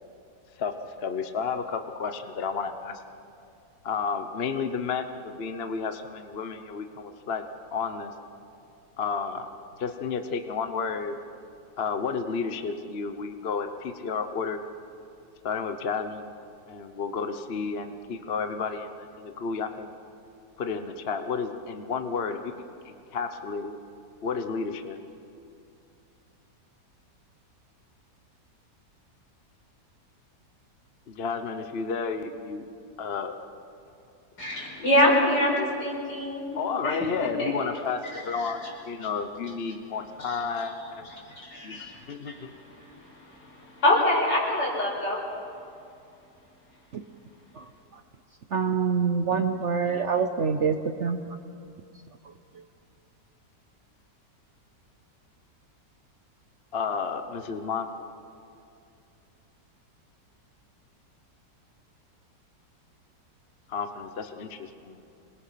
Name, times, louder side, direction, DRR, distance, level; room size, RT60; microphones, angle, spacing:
voice 1, 1.0-3.0 3.8-7.4 7.7-8.1 9.0-9.5 9.8-11.1 11.8-14.6 15.4-16.2 16.7-19.9 20.6-22.5 22.8-23.8 24.2-25.0 31.1-32.6 33.0-33.4 36.5-38.6 38.8-41.1 41.6-42.5 56.7-58.1 63.7-65.0, left 5 dB, 40° left, 8 dB, 1.0 m, -31 dB
voice 2, 34.4-36.5 36.8-37.5 38.1-38.5 40.2-40.4 41.4-42.0 42.3-42.9 43.4-45.2, left 1 dB, 75° left, -4 dB, 6.5 m, -25 dB
voice 3, 47.5-48.0 48.5-51.2, right 6 dB, 55° right, 8 dB, 0.9 m, -26 dB
26.5 x 21.5 x 5.9 m, 2.5 s
omnidirectional pair, 1.9 m